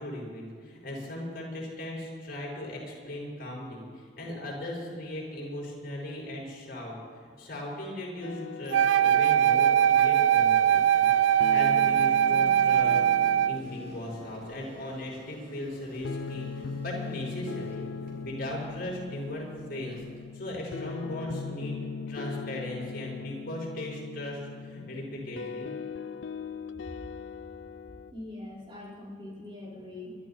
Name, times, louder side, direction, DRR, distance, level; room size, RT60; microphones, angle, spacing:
voice 1, 0.0-3.8 4.2-6.9 7.4-11.1 11.5-13.0 13.3-20.0 20.3-21.8 22.1-25.7, left 1 dB, 55° left, -3 dB, 5.5 m, -38 dB
frozen fjords only guitar, 8.2-28.1, left 5 dB, 85° left, 0.5 m, -40 dB
Wind instrument woodwind instrument, 8.7-13.6, right 10 dB, 90° right, 0.4 m, -21 dB
sound 1, 9.0-20.2, right 1 dB, 50° right, 4.1 m, -51 dB
voice 2, 28.1-30.2, left 2 dB, 30° right, -6 dB, 5.1 m, -42 dB
23.5 x 13.0 x 4.4 m, 2.2 s
head